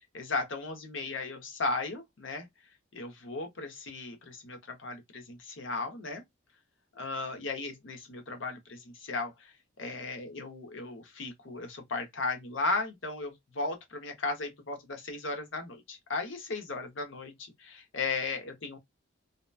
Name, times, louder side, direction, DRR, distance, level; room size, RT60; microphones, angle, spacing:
voice 1, 0.1-2.5 2.9-6.2 7.0-9.5 9.8-18.8, left 3 dB, 75° left, 0.8 m, -36 dB
2.8 x 2.1 x 2.3 m
head